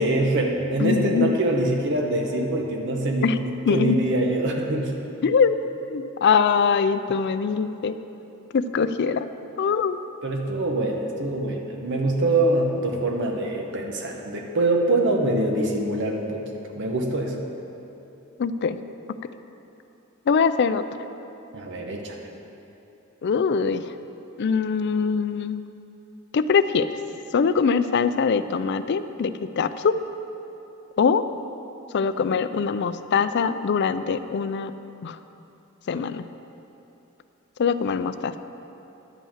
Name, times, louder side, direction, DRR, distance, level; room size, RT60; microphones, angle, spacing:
voice 1, 0.0-4.9 10.2-16.4 16.7-17.4 21.5-22.2, right 2 dB, 60° right, 1 dB, 0.9 m, -24 dB
voice 2, 0.8-1.3 3.2-3.4 3.7-4.0 5.2-5.6 5.9-7.9 8.5-9.3 9.6-10.0 18.4-18.8 20.3-20.8 23.2-23.8 24.4-25.6 26.3-26.9 27.3-30.0 31.0-31.2 31.9-34.7 35.0-35.1 35.9-36.2 37.6-38.3, left 5 dB, 55° left, 12 dB, 0.4 m, -22 dB
11.0 x 5.5 x 7.3 m, 2.9 s
head